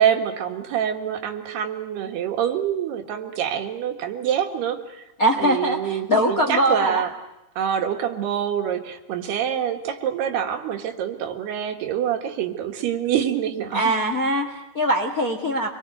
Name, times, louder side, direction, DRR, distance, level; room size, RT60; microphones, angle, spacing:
voice 1, 0.0-5.1 5.4-7.1 7.6-14.0, right 9 dB, 80° right, 4 dB, 3.8 m, -26 dB
voice 2, 5.2-7.0 13.7-15.7, equal, 40° left, 4 dB, 1.3 m, -22 dB
27.0 x 22.0 x 8.0 m, 0.95 s
omnidirectional pair, 4.6 m